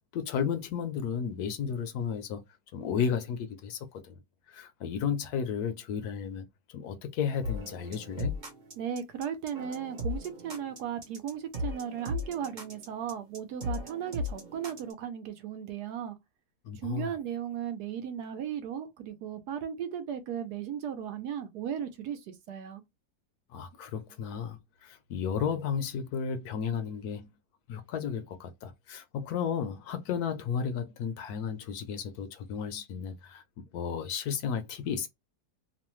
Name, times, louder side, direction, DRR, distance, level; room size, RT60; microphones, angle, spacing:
voice 1, 0.1-2.4 2.7-4.2 4.5-6.5 6.7-8.4 16.6-17.1 23.5-27.3 27.7-33.4 33.7-35.1, left 7 dB, 75° left, 1.0 m, -33 dB
sound 1, 7.4-14.9, left 2 dB, 40° right, 0.7 m, -37 dB
voice 2, 8.8-16.2 16.8-22.8, right 9 dB, 75° right, 1.2 m, -36 dB
3.1 x 2.1 x 3.0 m
omnidirectional pair, 1.8 m